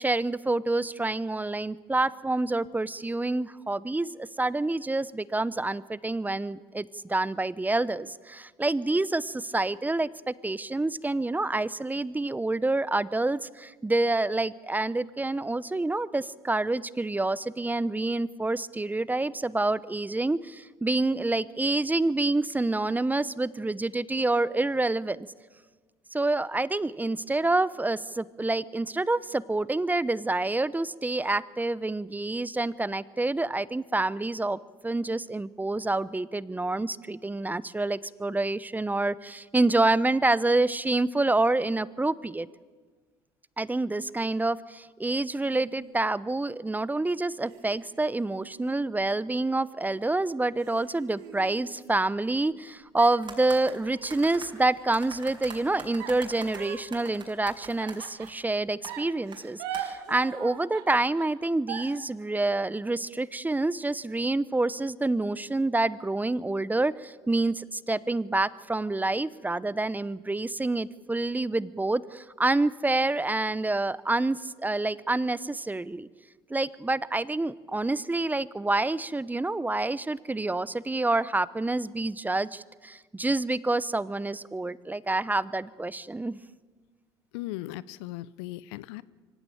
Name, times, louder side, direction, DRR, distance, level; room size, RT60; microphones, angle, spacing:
voice 1, 0.0-25.3 26.1-42.5 43.6-76.1 76.5-86.4, right 2 dB, 10° right, 19 dB, 0.8 m, -27 dB
sound 1, 45.4-46.7 47.4-49.6 50.1-50.2 50.6-52.6 53.0-55.0 56.0-58.5 58.9-62.0, right 10 dB, 75° right, 2.2 m, -42 dB
sound 2, 53.2-54.5 54.9-58.3 58.8-59.0 59.3-59.4 59.7-59.8, right 4 dB, 35° right, 6.1 m, -43 dB
voice 2, 87.3-89.0, left 17 dB, 70° left, 20 dB, 0.7 m, -37 dB
24.5 x 16.0 x 8.9 m, 1.4 s
hypercardioid pair, 60°, 14 cm